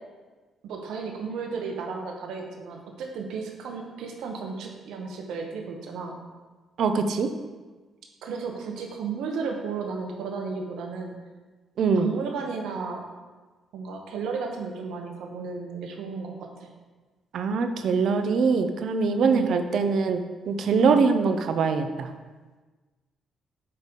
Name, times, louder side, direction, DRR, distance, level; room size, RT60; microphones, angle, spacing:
voice 1, 0.6-6.1 8.2-11.1 12.0-13.0 13.7-16.7 19.3-19.5 20.8-21.0, right 5 dB, 85° right, 2 dB, 1.1 m, -33 dB
voice 2, 6.8-7.3 11.8-12.1 17.3-20.2 20.5-22.1, right 5 dB, 65° right, 8 dB, 0.6 m, -23 dB
8.3 x 3.3 x 5.3 m, 1.3 s
cardioid pair, 90°, 0 cm